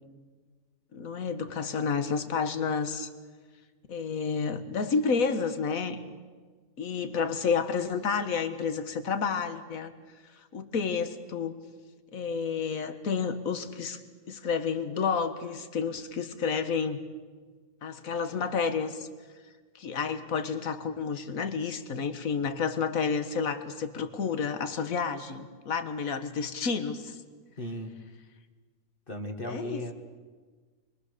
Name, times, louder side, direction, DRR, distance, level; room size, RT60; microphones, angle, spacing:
voice 1, 0.9-3.1 3.9-6.0 6.8-9.9 10.5-11.6 12.1-14.0 14.3-17.0 17.8-19.1 19.8-27.2 29.4-29.8, left 5 dB, 60° left, 9 dB, 1.8 m, -30 dB
voice 2, 27.6-27.9 29.1-29.9, left 1 dB, 35° left, 3 dB, 1.9 m, -36 dB
28.5 x 22.5 x 6.8 m, 1.5 s
omnidirectional pair, 1.7 m